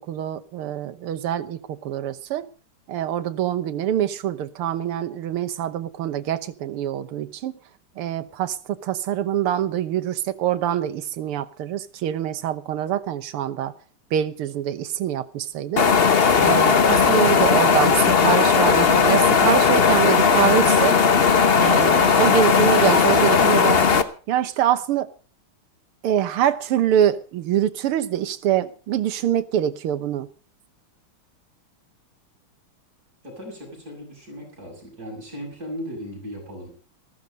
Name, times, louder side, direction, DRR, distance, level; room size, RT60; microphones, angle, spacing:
voice 1, 0.1-2.5 2.9-7.5 8.0-13.7 14.1-15.9 16.4-21.0 21.5-25.1 26.0-30.3, right 10 dB, 90° right, 1.9 m, -24 dB
sound 1, 15.8-24.0, left 6 dB, 45° left, 0.8 m, -17 dB
voice 2, 33.2-36.7, equal, 40° right, 8.1 m, -37 dB
14.5 x 14.0 x 5.2 m
omnidirectional pair, 2.4 m